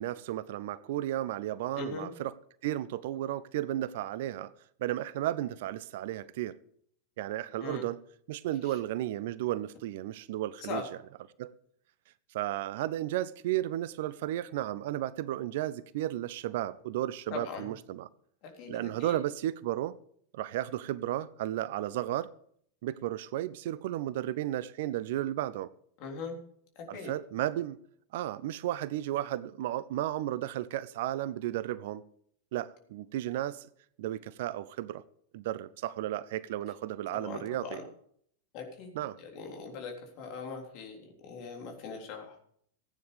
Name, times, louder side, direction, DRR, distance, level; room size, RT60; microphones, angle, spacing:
voice 1, 0.0-2.3 2.6-4.5 4.8-6.6 7.2-8.0 8.3-10.9 11.4-11.5 12.3-18.1 18.7-20.0 20.3-22.3 22.8-25.7 26.9-27.8 28.1-32.0 32.5-33.7 34.0-35.0 35.3-37.8 38.9-39.2, right 13 dB, 55° right, 0.5 m, -33 dB
voice 2, 1.8-2.1 7.6-7.9 10.6-10.8 17.3-17.7 18.6-19.2 26.0-26.4 26.9-27.1 37.1-37.8 38.5-42.4, left 4 dB, 40° left, 3.6 m, -40 dB
15.5 x 9.5 x 5.1 m
figure-of-eight pair, 90°, 0 cm